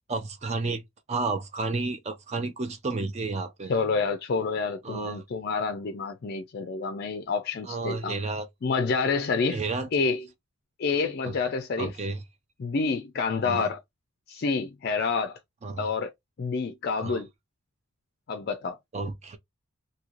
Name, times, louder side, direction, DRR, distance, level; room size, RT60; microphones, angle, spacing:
voice 1, 0.1-3.7 4.8-5.2 7.7-8.5 9.5-9.9 11.3-11.4 11.8-12.2 13.4-13.7 15.6-15.9 17.0-17.2 18.9-19.4, right 3 dB, 30° right, 0.4 m, -31 dB
voice 2, 3.7-8.2 8.6-9.6 9.9-10.2 10.8-11.9 12.6-13.8 14.3-15.4 15.8-16.1 16.4-17.3 18.3-18.8, left 4 dB, 45° left, 0.4 m, -28 dB
3.1 x 2.7 x 2.4 m
head